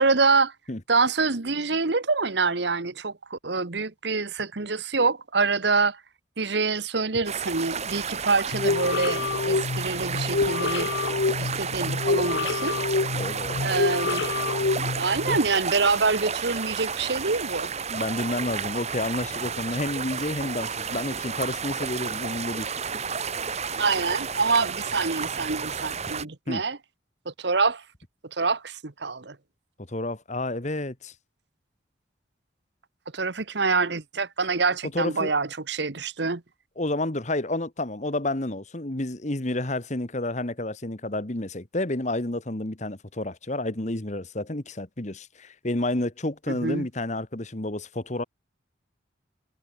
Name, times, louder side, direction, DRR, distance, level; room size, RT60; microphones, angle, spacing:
voice 1, 0.0-0.5 0.9-6.0 6.4-10.9 11.4-12.8 13.6-14.3 14.9-17.7 23.8-26.8 27.4-27.8 28.3-29.4 33.1-36.4 46.5-46.9, right 4 dB, 60° right, 1.2 m, -26 dB
sound 1, 7.3-26.3, right 6 dB, 35° right, 1.7 m, -32 dB
sound 2, 8.5-15.4, left 3 dB, 60° left, 0.7 m, -27 dB
voice 2, 13.2-13.7 17.9-22.7 26.5-26.6 29.9-31.1 34.9-35.3 36.8-48.2, left 1 dB, 40° left, 1.6 m, -30 dB
head